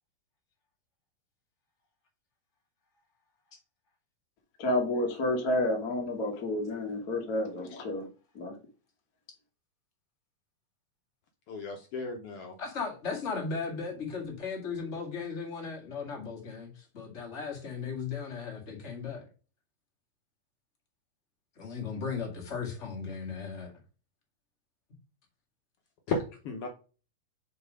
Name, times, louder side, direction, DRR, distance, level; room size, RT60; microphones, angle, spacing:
voice 1, 4.6-8.1 8.3-8.5, left 1 dB, 60° left, 1.0 m, -30 dB
voice 2, 11.5-12.5 26.1-26.7, left 3 dB, 85° left, 1.2 m, -34 dB
voice 3, 12.6-19.2 21.6-23.7, left 5 dB, 30° left, 1.3 m, -36 dB
5.4 x 4.3 x 4.9 m
omnidirectional pair, 3.9 m